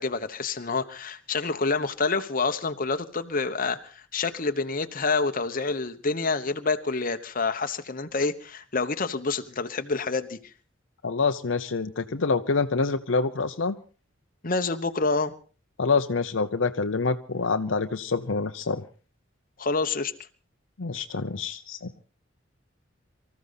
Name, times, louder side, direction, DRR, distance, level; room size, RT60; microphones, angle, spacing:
voice 1, 0.0-10.4 14.4-15.3 19.6-20.1, left 4 dB, 45° left, 9 dB, 1.1 m, -27 dB
voice 2, 11.0-13.8 15.8-18.8 20.8-21.9, left 4 dB, 70° left, 8 dB, 0.8 m, -26 dB
24.5 x 14.5 x 4.1 m, 0.36 s
head